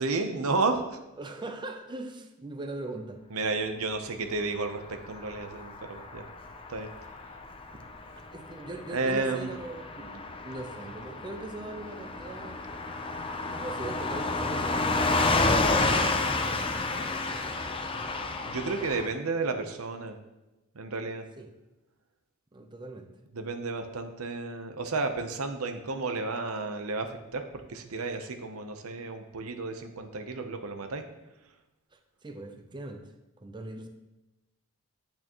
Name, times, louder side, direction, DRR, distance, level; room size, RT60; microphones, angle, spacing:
voice 1, 0.0-1.0 3.3-6.2 6.7-6.9 8.9-9.5 18.4-20.2 20.7-21.3 23.3-27.4 27.7-31.0, right 3 dB, 90° right, 6 dB, 0.8 m, -32 dB
voice 2, 1.2-3.2 8.3-12.6 13.5-15.3 21.4-21.5 22.5-23.1 31.9-33.1 33.4-33.9, right 2 dB, 20° right, 5 dB, 0.6 m, -40 dB
Car passing by / Truck, 4.7-19.1, left 3 dB, 25° left, 0.6 m, -30 dB
8.7 x 8.5 x 3.0 m, 0.99 s
head